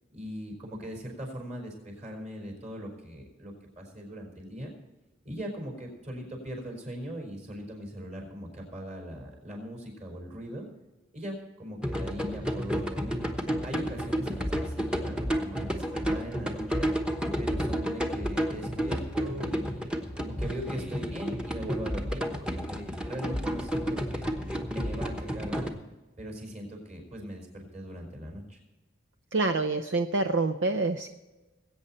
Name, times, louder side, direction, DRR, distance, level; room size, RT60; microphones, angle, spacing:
voice 1, 0.1-4.7 5.2-10.7 11.1-13.2 13.6-16.9 17.4-24.3 24.7-25.8 26.2-28.6, equal, 35° right, 2 dB, 4.5 m, -40 dB
sound 1, 11.8-25.7, equal, 5° right, 1.1 m, -31 dB
voice 2, 29.3-31.1, right 3 dB, 65° right, 7 dB, 0.7 m, -27 dB
20.5 x 8.9 x 4.3 m, 1.1 s
head